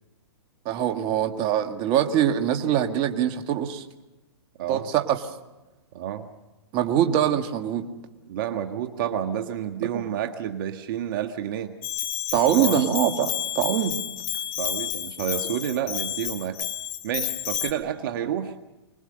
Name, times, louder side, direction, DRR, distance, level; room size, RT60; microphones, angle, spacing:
voice 1, 0.7-3.8 4.7-5.2 6.7-7.9 9.8-9.9 12.3-14.0, right 10 dB, 35° right, 5 dB, 1.8 m, -23 dB
voice 2, 5.9-6.3 8.3-11.7 12.4-12.8 14.6-16.6 17.0-18.5, right 10 dB, 50° right, 6 dB, 1.5 m, -29 dB
Bell, 11.8-17.7, left 11 dB, 35° left, 1.6 m, -30 dB
25.5 x 20.5 x 6.7 m, 1.1 s
hypercardioid pair, 130°, 14 cm